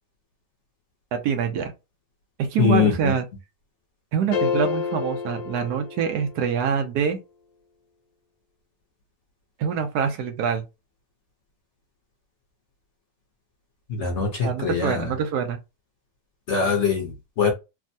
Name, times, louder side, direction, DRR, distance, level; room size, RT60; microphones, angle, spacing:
voice 1, 1.1-1.7 2.4-3.3 4.1-7.2 9.6-10.6 14.4-15.6, right 7 dB, 75° right, 1.2 m, -25 dB
voice 2, 2.6-2.9 13.9-15.0 16.5-17.1 17.4-17.5, left 6 dB, 55° left, 0.9 m, -22 dB
sound 1, 4.3-6.6, left 6 dB, 75° left, 1.1 m, -28 dB
3.4 x 2.1 x 2.6 m
omnidirectional pair, 1.8 m